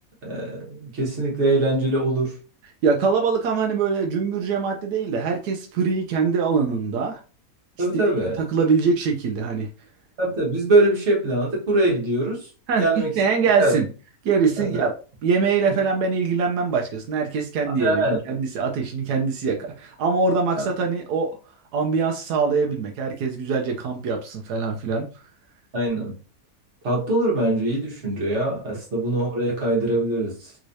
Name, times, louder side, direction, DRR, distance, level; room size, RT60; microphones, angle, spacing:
voice 1, 0.2-2.3 7.8-8.4 10.2-12.5 12.8-13.1 13.6-13.7 14.6-14.8 17.8-18.2 20.5-20.6 25.7-26.1 26.8-30.5, right 2 dB, 50° right, -3 dB, 1.6 m, -22 dB
voice 2, 2.8-7.2 8.4-9.7 12.7-12.8 13.2-13.9 14.2-14.9 15.2-21.4 21.7-25.0, right 5 dB, 90° right, 2 dB, 1.2 m, -23 dB
3.5 x 3.1 x 2.6 m, 0.36 s
omnidirectional pair, 1.6 m